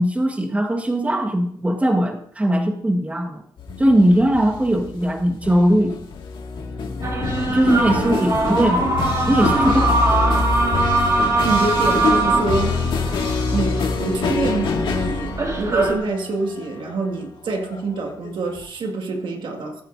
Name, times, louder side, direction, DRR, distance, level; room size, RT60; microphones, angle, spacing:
voice 1, 0.0-3.4 3.8-6.0 7.5-8.8 9.3-10.1, right 1 dB, 15° right, 1.4 m, -19 dB
sound 1, 3.6-18.6, left 4 dB, 75° left, 1.9 m, -26 dB
sound 2, 7.0-16.0, right 2 dB, 40° right, 2.2 m, -22 dB
voice 2, 8.0-8.3 11.4-12.8 13.5-19.8, right 3 dB, 70° right, 1.8 m, -26 dB
17.0 x 9.0 x 2.6 m
cardioid pair, 90°, 8 cm